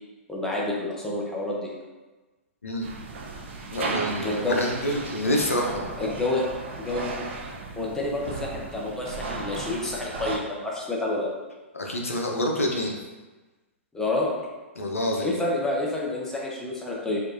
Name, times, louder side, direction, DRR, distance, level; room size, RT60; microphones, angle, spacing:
voice 1, 0.3-1.7 4.2-4.6 6.0-6.4 6.8-7.1 7.8-11.3 13.9-14.3 15.2-17.2, left 2 dB, 5° left, -3 dB, 0.7 m, -28 dB
sound 1, 2.8-10.4, right 3 dB, 60° right, 0.6 m, -35 dB
voice 2, 3.7-5.9 11.7-13.0 14.8-15.3, left 1 dB, 90° left, 0 dB, 0.7 m, -27 dB
4.5 x 2.6 x 2.5 m, 1.2 s
hypercardioid pair, 120°, 7 cm